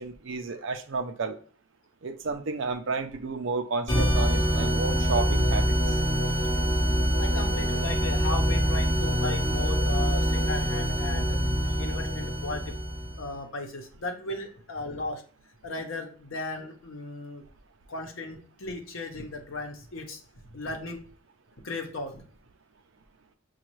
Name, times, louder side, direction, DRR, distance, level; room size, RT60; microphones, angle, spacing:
voice 1, 0.0-1.4 2.0-5.8, right 4 dB, 65° right, 7 dB, 0.5 m, -31 dB
sound 1, 3.9-13.2, equal, 5° left, 2.2 m, -25 dB
voice 2, 7.2-11.4 11.8-12.7 13.1-15.2 15.6-17.4 17.9-21.0 21.6-22.2, left 2 dB, 85° left, 3 dB, 0.8 m, -36 dB
6.3 x 2.3 x 3.0 m, 0.43 s
head